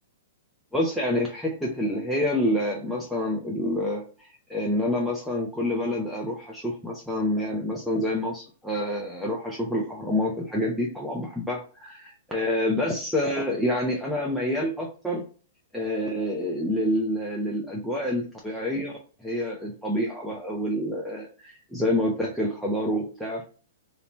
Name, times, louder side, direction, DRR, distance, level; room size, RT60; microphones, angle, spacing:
voice 1, 0.7-15.2 15.7-18.9 19.2-23.4, left 1 dB, ahead, -3 dB, 0.5 m, -27 dB
2.8 x 2.1 x 2.5 m, 0.39 s
hypercardioid pair, 125°, 0 cm